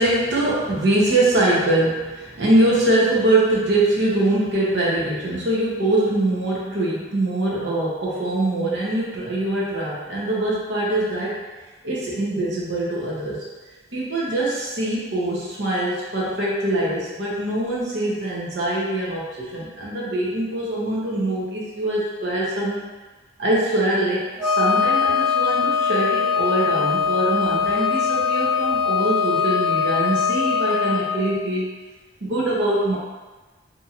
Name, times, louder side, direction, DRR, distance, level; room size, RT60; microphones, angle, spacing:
voice 1, 0.0-11.4 11.8-13.4 13.9-22.8 23.4-31.7 32.2-33.0, right 1 dB, 65° right, -5 dB, 0.8 m, -23 dB
Wind instrument woodwind instrument, 24.4-31.1, left 6 dB, ahead, 0.4 m, -21 dB
2.8 x 2.7 x 2.4 m, 1.3 s
head